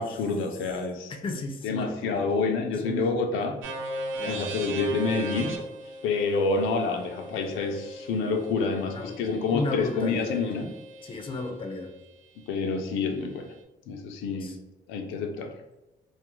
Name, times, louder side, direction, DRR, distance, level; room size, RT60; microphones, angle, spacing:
voice 1, 0.0-1.1 1.6-3.6 4.2-5.6 6.0-10.7 12.5-13.5 13.9-14.6 14.9-15.5, left 4 dB, 90° left, 4 dB, 0.4 m, -28 dB
voice 2, 1.1-2.2 2.8-3.5 4.2-4.4 8.8-10.4 11.0-11.9 14.3-14.6, left 2 dB, 25° left, 4 dB, 0.4 m, -34 dB
sound 1, 3.6-11.5, right 1 dB, 80° right, 0.5 m, -38 dB
2.3 x 2.0 x 2.9 m, 0.97 s
cardioid pair, 90°, 20 cm